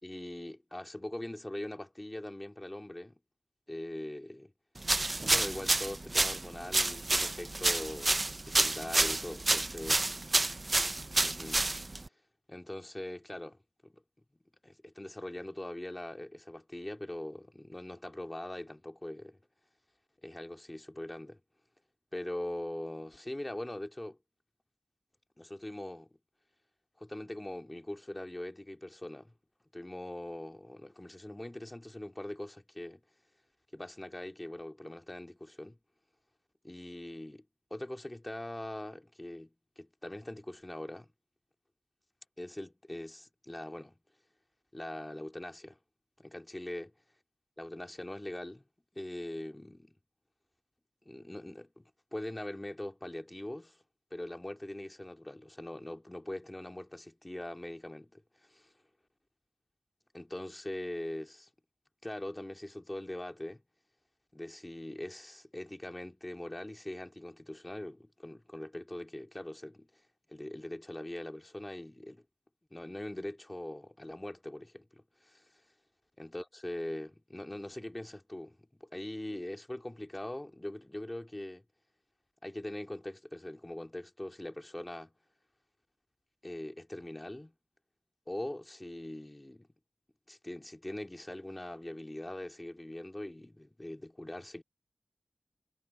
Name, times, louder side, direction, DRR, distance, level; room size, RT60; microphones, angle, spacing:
voice 1, 0.0-3.2 3.7-4.5 5.3-8.2 8.4-10.0 11.2-11.6 12.5-14.0 14.6-19.4 20.2-21.4 22.1-24.2 25.4-26.1 27.0-29.3 29.7-33.0 33.7-35.8 36.6-37.5 37.7-41.1 42.4-44.0 44.7-45.8 46.2-46.9 47.6-48.6 48.9-49.9 51.1-53.8 54.1-58.2 60.1-61.5 62.0-63.6 64.3-70.0 70.3-72.2 72.7-75.5 76.2-81.6 82.4-85.1 86.4-87.5 88.3-89.7 90.3-94.6, left 1 dB, 25° left, 2.2 m, -42 dB
sound 1, 4.8-12.1, right 2 dB, 45° right, 0.5 m, -29 dB
cardioid pair, 45°, 0 cm